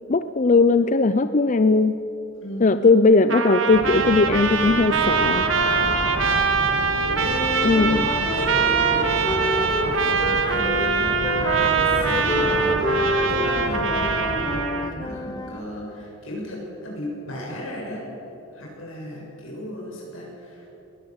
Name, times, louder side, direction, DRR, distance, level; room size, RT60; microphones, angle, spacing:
voice 1, 0.1-2.0 2.6-5.5 7.6-8.1, left 3 dB, 40° left, 11 dB, 0.5 m, -18 dB
voice 2, 2.4-2.7 7.0-13.0 13.3-14.1 14.4-18.0 18.5-20.7, left 1 dB, 85° left, -2 dB, 7.1 m, -35 dB
Trumpet, 3.3-14.9, right 5 dB, 70° right, 1.7 m, -23 dB
sound 1, 3.7-14.6, right 2 dB, 90° right, 1.7 m, -31 dB
Wind instrument woodwind instrument, 7.2-10.9 11.2-15.6, left 2 dB, 20° left, 0.8 m, -29 dB
21.0 x 17.0 x 7.9 m, 2.9 s
head